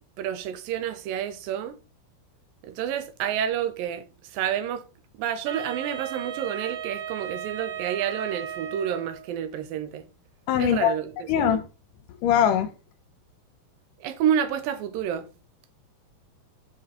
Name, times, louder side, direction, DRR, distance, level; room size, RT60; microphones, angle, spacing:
voice 1, 0.2-1.7 2.6-4.0 4.3-4.8 5.2-10.0 10.6-11.6 14.0-15.3, right 9 dB, 80° right, 2.4 m, -29 dB
Wind instrument woodwind instrument, 5.4-9.3, right 9 dB, 65° right, 4.0 m, -35 dB
voice 2, 10.5-10.9 11.3-11.7 12.2-12.7, left 9 dB, 75° left, 2.1 m, -21 dB
9.5 x 4.3 x 3.8 m
omnidirectional pair, 4.2 m